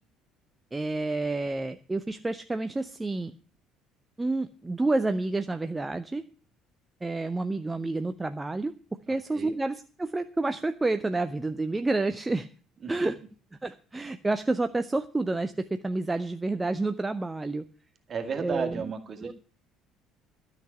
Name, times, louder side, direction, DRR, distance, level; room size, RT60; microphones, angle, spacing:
voice 1, 0.7-3.3 4.2-6.2 7.0-8.7 9.1-12.5 12.9-13.2 13.6-17.6 18.4-18.9 19.2-19.3, right 2 dB, 15° right, 9 dB, 0.6 m, -29 dB
voice 2, 18.1-19.3, right 6 dB, 35° right, 6 dB, 2.0 m, -33 dB
13.0 x 6.0 x 8.3 m, 0.40 s
figure-of-eight pair, 55°, 0 cm